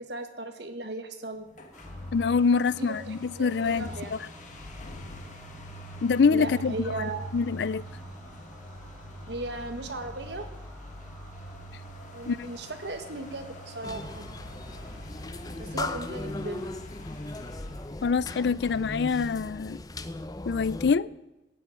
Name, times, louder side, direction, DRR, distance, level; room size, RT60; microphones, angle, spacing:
voice 1, 0.0-1.5 2.8-4.2 6.3-7.3 9.3-10.5 12.1-14.2 15.6-16.6, right 2 dB, 70° right, 1.7 m, -37 dB
sound 1, 1.5-19.0, right 1 dB, 45° left, 1.8 m, -44 dB
sound 2, 1.7-15.0, equal, 5° right, 3.8 m, -52 dB
voice 2, 2.1-4.2 6.0-6.7 7.3-7.8 12.3-12.5 18.0-19.8 20.5-21.1, left 5 dB, 65° left, 0.4 m, -25 dB
sound 3, 13.8-20.9, left 2 dB, 20° left, 0.6 m, -37 dB
15.5 x 7.8 x 9.2 m
head